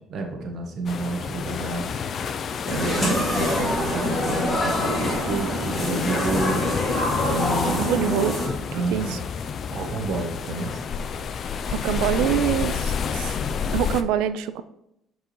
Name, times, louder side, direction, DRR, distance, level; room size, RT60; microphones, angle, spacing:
voice 1, 0.1-2.0 2.7-6.9 7.3-7.9 8.7-9.2 9.7-10.8, right 2 dB, 55° right, 3 dB, 1.1 m, -30 dB
sound 1, 0.9-14.0, left 6 dB, 45° left, 0.4 m, -30 dB
sound 2, 2.7-8.5, left 1 dB, 30° left, 2.1 m, -25 dB
voice 2, 7.7-8.4 8.9-9.2 11.7-13.4 13.7-14.6, right 10 dB, 90° right, 13 dB, 0.3 m, -25 dB
7.9 x 4.7 x 3.0 m, 0.83 s
cardioid pair, 110°, 0 cm